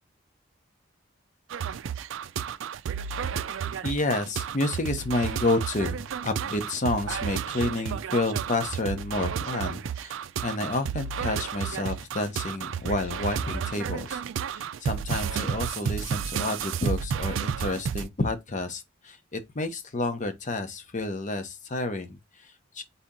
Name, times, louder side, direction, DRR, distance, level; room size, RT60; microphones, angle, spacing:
sound 1, 1.5-18.1, right 7 dB, 75° right, 0.4 m, -32 dB
voice 1, 3.8-14.2 14.5-22.8, left 2 dB, 40° left, 0.8 m, -30 dB
4.1 x 2.8 x 3.7 m
head